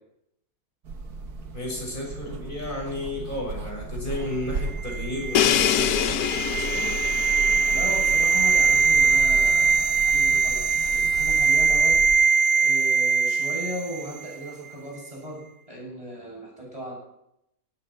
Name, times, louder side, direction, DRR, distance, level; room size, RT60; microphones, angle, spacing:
sound 1, 0.8-12.2, right 4 dB, 75° right, 1.9 m, -36 dB
voice 1, 1.5-6.9, left 1 dB, 30° left, -1 dB, 6.3 m, -33 dB
sound 2, 4.8-14.1 14.3-14.5, right 5 dB, 35° right, 1.1 m, -21 dB
Crash cymbal, 5.3-9.2, left 10 dB, 75° left, 1.2 m, -26 dB
voice 2, 7.7-12.0 12.6-16.9, equal, 20° right, -3 dB, 7.8 m, -37 dB
17.0 x 14.0 x 4.5 m, 0.79 s
omnidirectional pair, 1.7 m